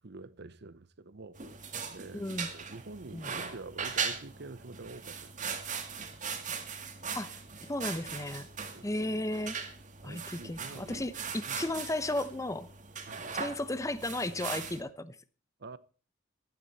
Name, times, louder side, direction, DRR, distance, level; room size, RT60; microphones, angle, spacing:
voice 1, 0.0-5.6 8.7-8.9 10.0-11.0 11.5-11.6 13.1-13.4 15.6-15.8, right 3 dB, 55° right, 0.8 m, -47 dB
sound 1, 1.4-14.8, right 6 dB, 40° right, 2.1 m, -39 dB
voice 2, 2.1-2.5 3.1-3.3 7.1-8.5 8.8-9.6 10.0-12.7 13.4-15.2, left 1 dB, 15° left, 0.8 m, -34 dB
15.5 x 12.0 x 4.2 m
head